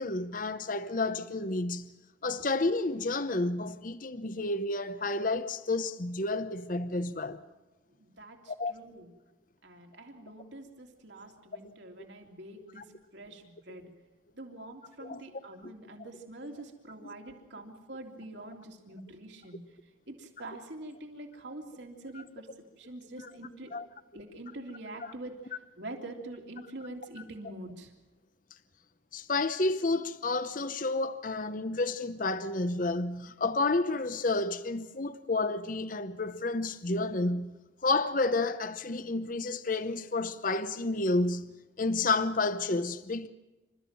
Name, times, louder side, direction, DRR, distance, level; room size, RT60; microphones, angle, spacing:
voice 1, 0.0-1.9 2.2-7.4 8.5-8.7 11.6-11.7 12.8-12.9 15.0-15.2 15.6-15.7 16.0-16.1 17.0-17.1 23.7-23.8 29.1-37.6 37.8-41.5 41.8-43.3, left 3 dB, 45° left, 0.8 m, -30 dB
voice 2, 8.0-9.1 9.6-13.9 14.3-19.6 20.1-22.5 22.8-23.7 24.1-27.9, right 2 dB, 65° right, 3.2 m, -45 dB
27.5 x 14.0 x 7.5 m
head